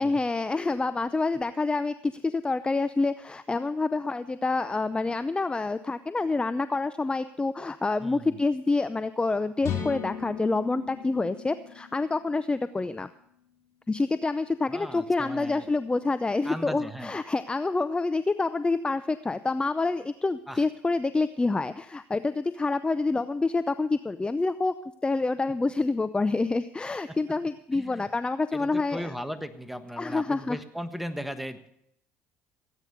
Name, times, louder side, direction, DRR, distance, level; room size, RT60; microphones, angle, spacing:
voice 1, 0.0-13.1 13.9-24.7 25.0-29.1 30.0-30.6, left 3 dB, 15° left, 13 dB, 0.6 m, -27 dB
voice 2, 8.0-8.4 14.7-15.7 16.4-17.1 20.5-20.6 27.1-27.2 27.7-28.1 28.5-31.7, equal, ahead, 10 dB, 1.4 m, -37 dB
sound 1, 9.6-13.4, left 8 dB, 50° left, 4.2 m, -37 dB
17.0 x 9.2 x 6.6 m, 0.76 s
hypercardioid pair, 65°, 6 cm